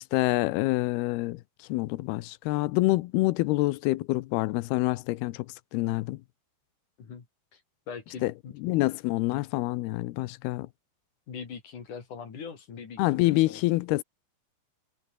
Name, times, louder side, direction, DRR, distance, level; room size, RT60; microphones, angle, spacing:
voice 1, 0.0-1.4 1.7-5.5 5.7-6.2 8.2-8.3 8.6-10.7 13.0-14.0, left 19 dB, 90° left, 2.7 m, -26 dB
voice 2, 7.9-8.5 11.3-13.6, left 6 dB, 55° left, 4.9 m, -41 dB
omnidirectional pair, 4.4 m